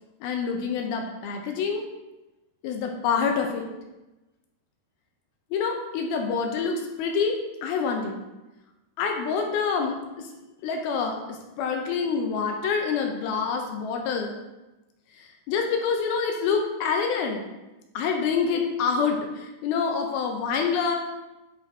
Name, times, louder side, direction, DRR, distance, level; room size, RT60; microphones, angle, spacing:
voice 1, 0.2-1.8 2.6-3.7 5.5-8.2 9.0-10.3 10.6-14.3 15.2-17.4 17.9-21.0, left 5 dB, 80° left, 2 dB, 2.4 m, -27 dB
10.0 x 4.4 x 3.2 m, 1.0 s
omnidirectional pair, 4.7 m